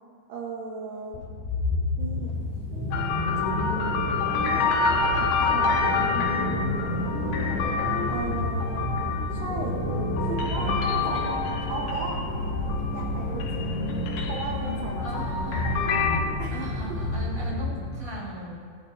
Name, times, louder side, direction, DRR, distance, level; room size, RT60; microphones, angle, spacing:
voice 1, 0.3-1.2 2.0-2.3 2.7-3.1 4.5-5.9 8.1-8.9 9.3-9.8 10.3-12.2 12.9-13.7 14.3-15.1 16.4-16.6, right 4 dB, 80° right, -2 dB, 2.0 m, -36 dB
sound 1, 1.1-18.0, left 1 dB, 65° left, 4.4 m, -30 dB
sound 2, 2.3-17.2, right 1 dB, 45° left, 2.3 m, -43 dB
sound 3, 2.9-13.1 13.4-16.2, left 5 dB, 80° left, 3.2 m, -28 dB
voice 2, 15.0-15.7 16.5-18.6, right 1 dB, 10° left, -7 dB, 1.9 m, -38 dB
19.5 x 11.0 x 2.6 m, 2.2 s
omnidirectional pair, 5.6 m